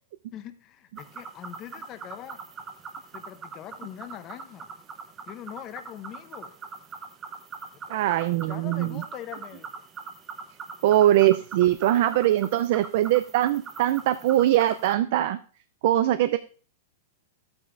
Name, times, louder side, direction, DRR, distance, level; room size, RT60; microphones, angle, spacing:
voice 1, 0.3-2.4 3.1-4.7 5.3-6.5 7.9-9.7, left 11 dB, 25° left, 9 dB, 0.7 m, -42 dB
sound 1, 1.0-14.9, right 5 dB, 20° right, 0.8 m, -42 dB
voice 2, 7.9-9.0 10.8-15.4 15.8-16.4, right 13 dB, 50° right, 12 dB, 0.4 m, -22 dB
12.0 x 8.8 x 2.5 m, 0.40 s
supercardioid pair, 165°, 0 cm